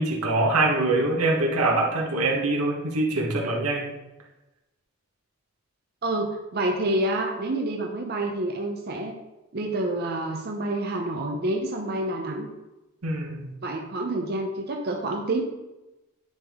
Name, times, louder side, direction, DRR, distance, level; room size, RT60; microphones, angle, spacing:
voice 1, 0.0-3.9 13.0-13.5, right 2 dB, 90° right, -1 dB, 1.3 m, -24 dB
voice 2, 6.0-9.1 9.5-12.5 13.6-15.4, right 1 dB, 45° right, 1 dB, 0.6 m, -28 dB
9.9 x 3.6 x 3.6 m, 1.0 s
head